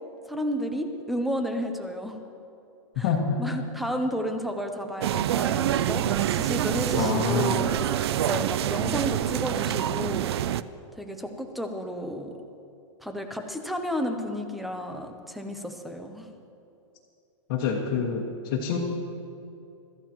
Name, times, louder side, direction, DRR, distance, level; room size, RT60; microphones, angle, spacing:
voice 1, 0.3-2.2 3.0-3.1 3.4-10.4 10.9-12.4 13.0-16.3, equal, ahead, 5 dB, 0.6 m, -32 dB
voice 2, 3.0-3.4 7.0-7.6 17.5-18.8, left 6 dB, 35° left, -3 dB, 1.4 m, -26 dB
sound 1, 5.0-10.6, right 12 dB, 55° right, 0.4 m, -26 dB
24.0 x 14.0 x 3.0 m, 2.7 s
supercardioid pair, 170°, 16 cm